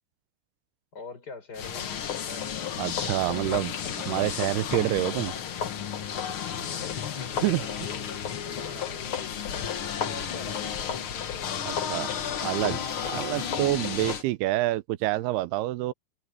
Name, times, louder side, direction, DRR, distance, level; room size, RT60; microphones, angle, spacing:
voice 1, 0.9-2.5 6.5-9.4 10.0-10.8 11.3-11.6, left 3 dB, 25° left, 4.8 m, -44 dB
sound 1, 1.5-14.2, left 8 dB, 75° left, 1.2 m, -32 dB
voice 2, 2.8-3.7 4.0-5.3 7.4-7.6 11.7-12.1 12.4-15.9, right 17 dB, 85° right, 2.7 m, -27 dB
omnidirectional pair, 4.5 m